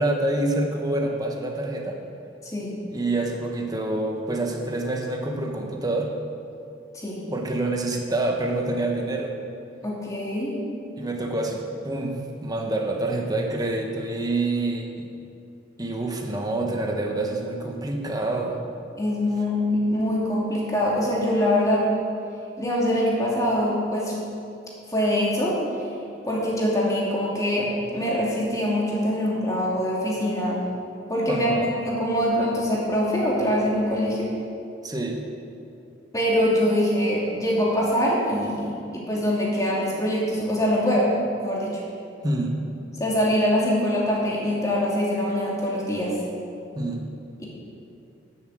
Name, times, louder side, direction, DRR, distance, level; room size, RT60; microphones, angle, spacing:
voice 1, 0.0-2.0 2.9-6.1 7.3-9.3 11.0-15.1 15.8-18.6 31.3-31.7 34.8-35.2 42.2-42.6 46.7-47.1, right 2 dB, 20° right, 2 dB, 1.2 m, -27 dB
voice 2, 2.4-2.8 6.9-7.2 9.8-10.5 19.0-21.9 22.6-24.2 24.9-25.6 26.2-30.6 31.1-34.3 36.1-41.1 41.4-41.8 43.0-46.2 47.4-47.5, equal, 20° left, -5 dB, 2.6 m, -24 dB
9.7 x 7.7 x 7.7 m, 2.7 s
head